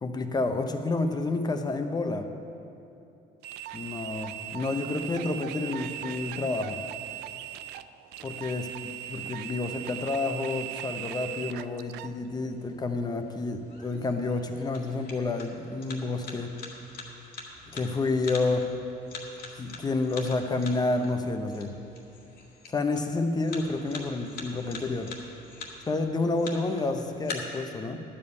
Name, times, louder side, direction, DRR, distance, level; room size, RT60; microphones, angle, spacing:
voice 1, 0.0-2.3 3.7-6.8 8.2-8.7 9.1-16.5 17.7-18.7 19.5-21.7 22.7-25.1 25.9-28.0, left 3 dB, 25° left, 6 dB, 0.8 m, -29 dB
sound 1, 3.4-12.1, right 13 dB, 80° right, 0.4 m, -39 dB
sound 2, 12.3-27.3, left 4 dB, 60° left, 1.8 m, -45 dB
11.5 x 5.4 x 8.2 m, 2.9 s
cardioid pair, 110°, 17 cm